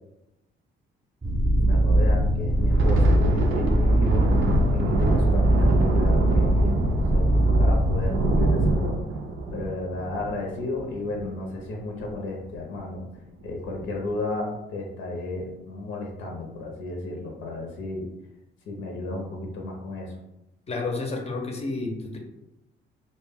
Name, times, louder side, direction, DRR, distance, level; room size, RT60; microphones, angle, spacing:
sound 1, 1.2-8.8, right 1 dB, 25° right, 0.5 m, -21 dB
voice 1, 1.6-7.3 7.6-9.0 9.5-13.0 13.4-18.1 18.7-20.1, left 2 dB, 85° left, 0 dB, 0.6 m, -33 dB
Thunder, 2.5-11.6 11.9-12.1 12.5-12.8 13.4-13.9, right 2 dB, 75° right, 0.4 m, -26 dB
voice 2, 20.7-22.2, left 3 dB, 30° left, 2 dB, 0.5 m, -30 dB
2.1 x 2.0 x 3.4 m, 0.91 s
cardioid pair, 90°, 20 cm